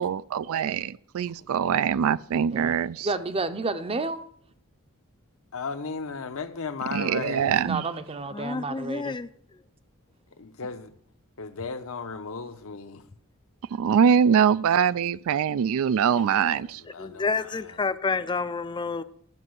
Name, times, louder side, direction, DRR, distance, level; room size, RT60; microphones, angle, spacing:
voice 1, 0.0-3.1 6.9-7.9 13.7-16.8, right 7 dB, 65° right, 0.3 m, -23 dB
voice 2, 3.0-4.2 7.6-9.2, right 3 dB, 25° right, 0.7 m, -30 dB
voice 3, 5.5-7.6 10.4-10.9 11.4-13.1 16.1-17.8, left 4 dB, 65° left, 0.9 m, -36 dB
voice 4, 8.3-9.3 17.0-19.0, left 4 dB, 20° left, 0.4 m, -29 dB
12.5 x 5.4 x 7.8 m
head